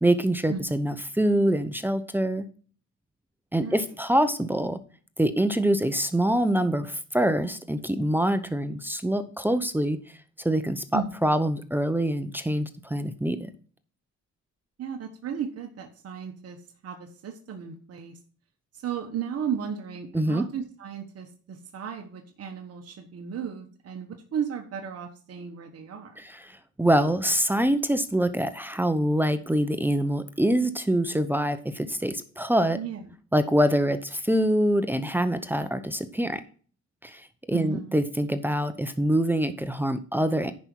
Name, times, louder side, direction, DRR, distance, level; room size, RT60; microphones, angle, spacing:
voice 1, 0.0-2.5 3.5-4.8 5.2-13.5 20.1-20.5 26.2-32.8 33.3-36.4 37.0-40.5, right 1 dB, 5° right, 10 dB, 0.8 m, -25 dB
voice 2, 14.8-18.2 18.7-26.2 32.7-33.1 37.5-38.0, right 7 dB, 55° right, 3 dB, 1.3 m, -35 dB
10.5 x 5.3 x 4.6 m, 0.42 s
cardioid pair, 90°, 30 cm